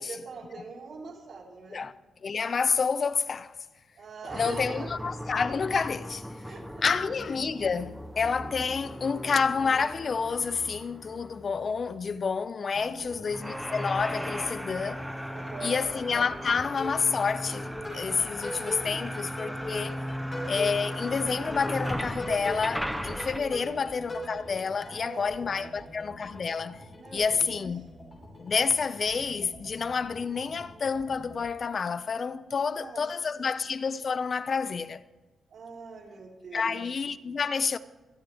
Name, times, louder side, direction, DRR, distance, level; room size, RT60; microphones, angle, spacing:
voice 1, 0.0-1.8 4.0-4.9 6.4-6.9 12.8-13.2 15.3-15.8 18.9-19.0 23.6-24.0 24.9-25.9 27.0-27.6 32.4-33.1 33.4-33.5 35.5-36.8, right 4 dB, 65° right, 3.6 m, -43 dB
voice 2, 2.2-3.5 4.3-6.3 6.8-15.0 15.6-20.0 20.5-26.8 27.1-27.8 28.4-35.0 36.5-37.8, left 5 dB, 40° left, 0.5 m, -29 dB
sound 1, 4.3-12.3 13.3-23.4, equal, ahead, 0.7 m, -37 dB
sound 2, 12.7-31.4, equal, 20° left, 5.8 m, -43 dB
25.0 x 9.1 x 3.5 m
wide cardioid pair, 160°, 0 cm